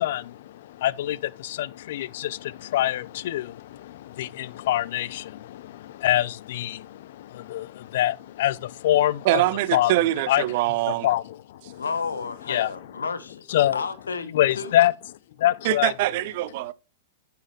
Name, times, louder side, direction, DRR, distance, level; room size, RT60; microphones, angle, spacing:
voice 1, 0.0-9.4 9.7-9.9 10.3-10.4 10.9-11.8 12.5-12.7 13.5-13.8 14.3-14.9 15.4-15.9, left 14 dB, 55° left, 0.5 m, -25 dB
voice 2, 9.2-11.1 15.6-16.7, right 16 dB, 50° right, 0.5 m, -23 dB
voice 3, 11.8-13.5 13.7-14.7, left 5 dB, 80° left, 1.1 m, -31 dB
9.6 x 5.7 x 3.2 m
figure-of-eight pair, 105°, 0 cm